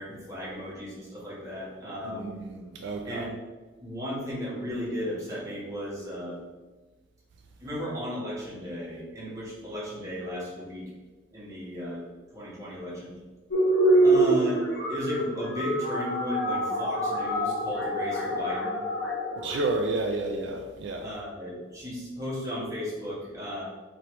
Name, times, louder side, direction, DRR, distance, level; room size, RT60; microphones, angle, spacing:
voice 1, 0.0-2.3 3.0-3.3 3.8-6.4 7.6-10.9 11.3-12.0 12.3-13.1 14.0-14.6 14.9-18.8 21.0-23.6, left 1 dB, 20° right, -7 dB, 1.3 m, -35 dB
voice 2, 2.0-3.3 19.4-21.1, right 2 dB, 65° right, 3 dB, 0.3 m, -31 dB
sound 1, 13.5-19.6, right 1 dB, 60° left, 1.1 m, -25 dB
3.1 x 3.0 x 4.5 m, 1.3 s
head